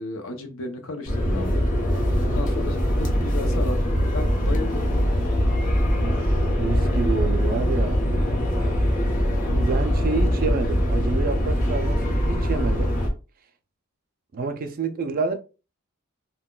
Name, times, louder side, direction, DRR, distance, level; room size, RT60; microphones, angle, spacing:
voice 1, 0.0-1.6 2.2-3.9 4.1-5.3, left 2 dB, 75° left, 0.6 m, -34 dB
sound 1, 1.1-13.1, equal, 40° left, 0.8 m, -22 dB
voice 2, 6.0-8.0 8.6-8.9 9.5-12.9 14.3-15.4, right 4 dB, 45° right, 0.4 m, -29 dB
3.8 x 2.2 x 2.2 m
head